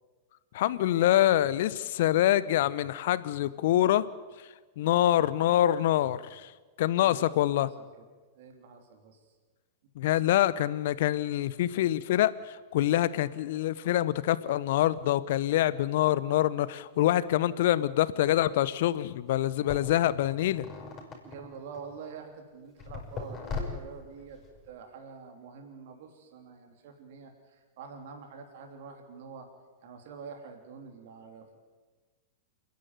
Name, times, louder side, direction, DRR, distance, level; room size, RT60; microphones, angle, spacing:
voice 1, 0.5-4.0 4.8-6.5 6.8-7.7 10.0-20.6, left 13 dB, 60° left, 17 dB, 0.9 m, -25 dB
voice 2, 7.0-7.9 8.4-9.2 19.9-20.2 21.2-24.4 24.7-29.5 29.8-31.6, right 5 dB, 55° right, 4 dB, 3.2 m, -46 dB
sound 1, 18.9-19.0 19.7-22.0 22.8-24.7, left 4 dB, 30° left, 6.8 m, -39 dB
29.0 x 10.5 x 9.4 m, 1.4 s
figure-of-eight pair, 95°, 0 cm